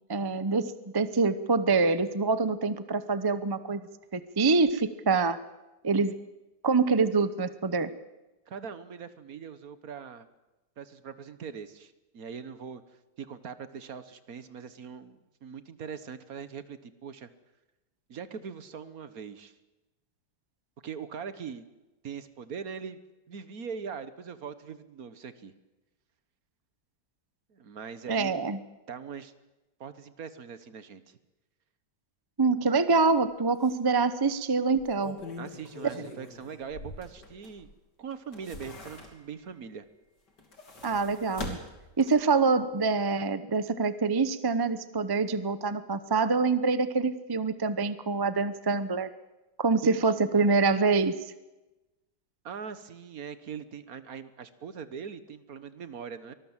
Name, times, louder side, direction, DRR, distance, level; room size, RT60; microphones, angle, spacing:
voice 1, 0.1-3.8 4.1-5.4 5.8-6.2 6.6-7.9 28.1-28.6 32.4-35.2 40.8-41.6 42.0-49.1 49.6-51.1, right 4 dB, 25° right, 13 dB, 0.4 m, -25 dB
voice 2, 8.5-10.3 10.8-17.3 18.1-19.5 20.8-21.6 22.0-23.0 23.3-25.5 27.5-28.3 28.9-29.3 29.8-31.2 35.4-37.7 38.0-39.9 49.8-50.1 52.4-56.3, right 6 dB, 55° right, 13 dB, 1.6 m, -41 dB
sound 1, 33.1-33.2 33.6-33.7 34.7-37.7 38.1-39.5 40.3-42.4 42.8-42.9, left 2 dB, 75° left, 3.8 m, -43 dB
24.5 x 19.5 x 7.4 m, 1.1 s
omnidirectional pair, 1.9 m